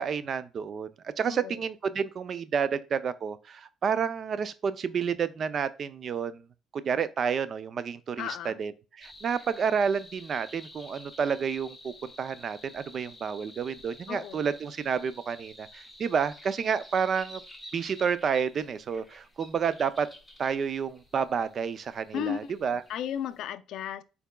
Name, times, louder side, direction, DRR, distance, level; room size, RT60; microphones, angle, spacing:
voice 1, 0.0-6.4 6.7-8.7 9.0-17.4 17.7-20.1 20.4-22.8, right 6 dB, 40° right, 0.4 m, -30 dB
voice 2, 1.3-1.6 8.2-8.6 14.1-14.4 22.1-24.0, left 9 dB, 65° left, 0.4 m, -35 dB
sound 1, 9.0-23.4, left 1 dB, 5° left, 0.8 m, -51 dB
4.5 x 4.0 x 2.2 m
cardioid pair, 135°, 0 cm